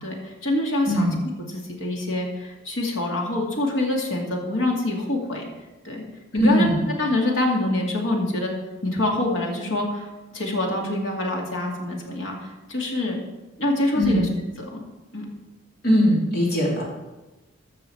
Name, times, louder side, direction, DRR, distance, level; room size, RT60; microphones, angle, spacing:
voice 1, 0.0-1.1 1.5-5.5 5.8-6.0 6.3-6.7 7.0-13.2 13.6-14.3 14.7-14.8 15.1-15.3, left 1 dB, 70° left, -1 dB, 2.3 m, -25 dB
voice 2, 0.9-1.2 6.3-6.8 13.9-14.3 15.8-16.8, equal, 50° left, -3 dB, 2.9 m, -20 dB
13.5 x 6.6 x 4.6 m, 1.1 s
head